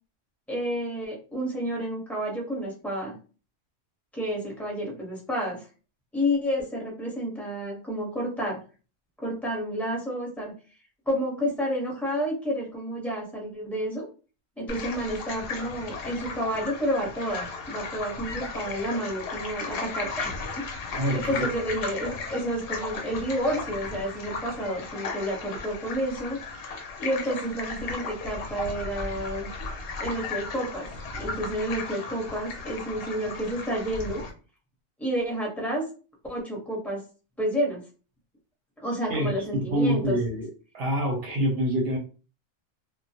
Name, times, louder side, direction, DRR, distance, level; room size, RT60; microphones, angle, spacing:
voice 1, 0.5-3.1 4.1-5.7 6.1-8.6 9.2-10.5 11.1-14.1 14.6-20.7 21.1-26.4 27.0-29.5 30.0-30.9 31.1-34.2 35.0-35.8 36.3-37.0 37.4-37.8 38.8-40.2, equal, ahead, -3 dB, 0.6 m, -30 dB
sound 1, 14.7-34.3, left 4 dB, 60° left, 0.7 m, -35 dB
voice 2, 21.0-21.5 39.1-40.5 40.7-42.0, equal, 60° right, 0 dB, 0.8 m, -26 dB
2.2 x 2.0 x 2.7 m, 0.36 s
omnidirectional pair, 1.3 m